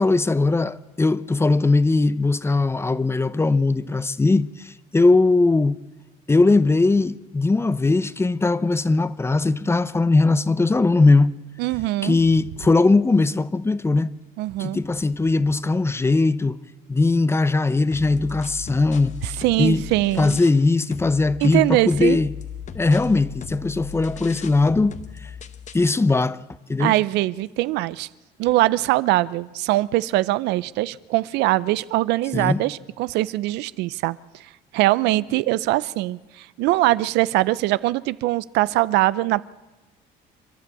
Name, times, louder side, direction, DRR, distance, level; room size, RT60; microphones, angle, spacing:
voice 1, 0.0-5.8 6.3-11.4 12.0-14.1 14.6-16.6 16.9-19.2 19.6-19.8 20.2-22.3 22.7-25.0 25.7-26.4 26.7-26.9 32.3-32.6, left 3 dB, 15° left, 0.7 m, -19 dB
voice 2, 11.6-12.2 14.4-14.8 19.2-20.4 21.4-22.2 26.8-28.1 28.4-34.2 34.7-39.4, right 17 dB, 90° right, 0.6 m, -22 dB
sound 1, 17.9-20.7 20.9-25.9, left 8 dB, 45° left, 1.1 m, -37 dB
28.0 x 12.0 x 8.3 m
cardioid pair, 110°, 17 cm